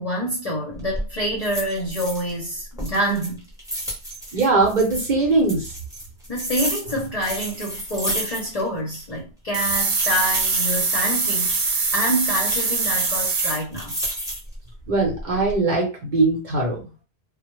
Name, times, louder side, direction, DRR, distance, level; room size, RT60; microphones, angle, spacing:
voice 1, 0.0-3.5 6.3-14.0, equal, 40° left, 0.6 m, -27 dB
sound 1, 0.7-1.1 1.4-2.5 2.8-5.1 5.5-8.7 8.9-9.0 9.6-11.8 12.4-14.6 15.1-15.6, equal, 5° right, 0.7 m, -31 dB
voice 2, 4.3-5.7 14.9-16.9, right 3 dB, 50° right, 0.8 m, -21 dB
sound 2, 9.5-13.6, right 4 dB, 70° right, 1.0 m, -23 dB
2.1 x 2.0 x 3.0 m
omnidirectional pair, 1.2 m